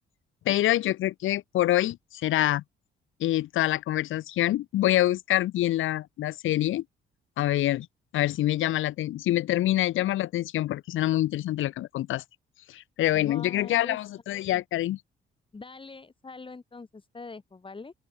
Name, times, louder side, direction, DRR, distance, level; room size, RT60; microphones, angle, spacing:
voice 1, 0.4-2.6 3.2-6.8 7.4-7.9 8.1-12.2 12.7-15.0, left 14 dB, 85° left, 2.5 m, -26 dB
voice 2, 13.1-14.0 15.5-17.9, left 4 dB, 25° left, 4.4 m, -43 dB
open air
cardioid pair, 90°, 20 cm